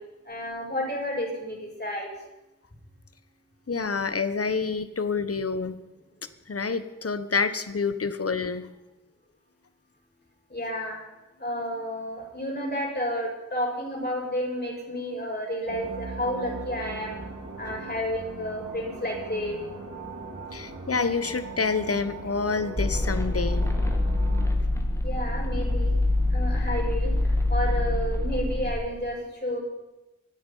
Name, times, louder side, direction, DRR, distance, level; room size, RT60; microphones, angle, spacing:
voice 1, 0.2-2.1 10.5-11.0 11.4-17.2 17.6-19.7 25.0-25.9 26.3-29.6, equal, 35° left, -2 dB, 6.6 m, -31 dB
voice 2, 3.7-5.8 6.5-8.7 20.5-23.7, left 4 dB, 50° left, 12 dB, 1.1 m, -28 dB
sound 1, 15.7-24.5, right 3 dB, 80° right, 3.7 m, -39 dB
sound 2, 22.8-28.7, left 1 dB, 10° left, 2.2 m, -25 dB
24.5 x 8.9 x 5.6 m, 1.0 s
wide cardioid pair, 55°, 30 cm